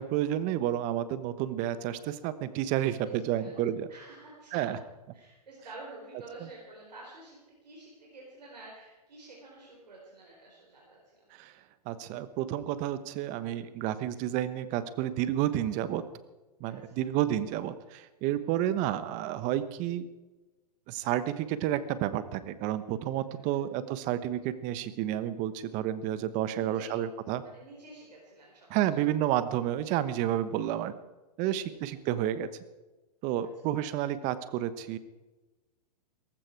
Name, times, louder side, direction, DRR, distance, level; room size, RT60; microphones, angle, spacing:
voice 1, 0.0-3.9 4.5-4.8 6.4-6.5 11.3-11.5 11.8-16.0 16.6-20.1 20.9-27.4 28.7-30.9 31.4-32.5 33.2-35.0, right 12 dB, 40° right, 14 dB, 1.1 m, -30 dB
voice 2, 3.9-4.7 5.1-11.2 16.8-17.0 18.3-18.4 23.2-23.6 26.6-27.0 27.4-28.7 31.4-31.7, right 2 dB, 90° right, -3 dB, 4.8 m, -50 dB
17.5 x 15.0 x 4.7 m, 1.1 s
hypercardioid pair, 120°, 21 cm